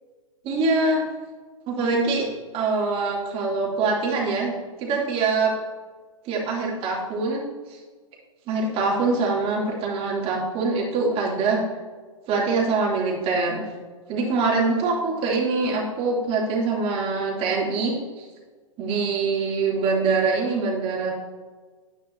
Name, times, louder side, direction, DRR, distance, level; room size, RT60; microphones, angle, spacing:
voice 1, 0.4-1.0 1.7-2.3 2.5-5.5 6.2-7.4 7.7-7.8 8.5-11.6 12.3-13.7 14.1-18.2 18.8-21.1, right 3 dB, 35° right, -2 dB, 2.8 m, -24 dB
10.0 x 9.5 x 2.7 m, 1.4 s
hypercardioid pair, 115°, 18 cm